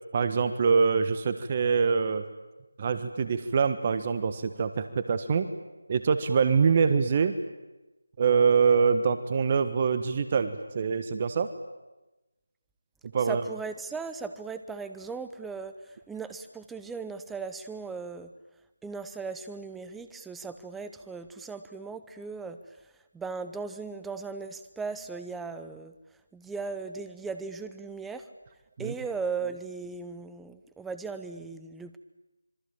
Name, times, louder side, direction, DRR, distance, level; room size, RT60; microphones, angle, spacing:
voice 1, 0.1-2.2 2.8-5.5 5.9-7.3 8.2-11.5 13.1-13.4 28.8-28.9, right 5 dB, 30° right, 11 dB, 1.4 m, -24 dB
voice 2, 13.2-18.3 18.8-25.9 26.3-28.3 28.8-32.0, right 4 dB, 5° right, 10 dB, 0.9 m, -37 dB
26.0 x 23.5 x 8.9 m, 1.0 s
figure-of-eight pair, 160°, 0 cm